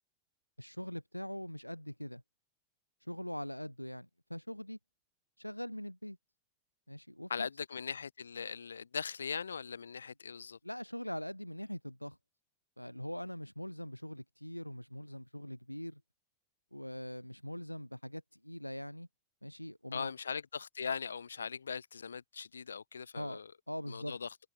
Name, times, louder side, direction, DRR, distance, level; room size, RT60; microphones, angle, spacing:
voice 1, 0.6-2.2 3.0-4.8 5.4-6.2 6.9-7.5 10.6-12.2 12.8-16.0 16.7-19.1 19.4-20.1 23.1-24.2, equal, 90° left, 0.8 m, -42 dB
voice 2, 7.3-10.6 19.9-23.5 23.9-24.3, left 6 dB, 70° left, 1.8 m, -40 dB
figure-of-eight pair, 90°, 0 cm